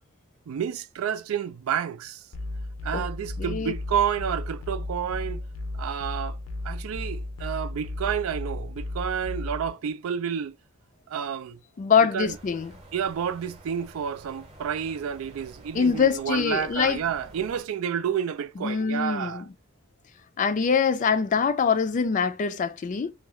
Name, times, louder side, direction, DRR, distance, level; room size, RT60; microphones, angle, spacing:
voice 1, 0.5-2.2 2.8-5.4 5.7-6.4 6.6-10.6 11.1-11.6 12.1-12.3 12.9-19.5, right 8 dB, 90° right, 0.3 m, -30 dB
sound 1, 2.3-9.7, left 2 dB, 80° left, 0.6 m, -34 dB
voice 2, 3.4-3.7 11.8-12.7 15.7-17.0 18.6-19.5 20.4-23.1, left 6 dB, 40° left, 0.3 m, -24 dB
sound 2, 12.2-17.6, right 2 dB, 30° right, 0.8 m, -49 dB
2.7 x 2.3 x 3.0 m
head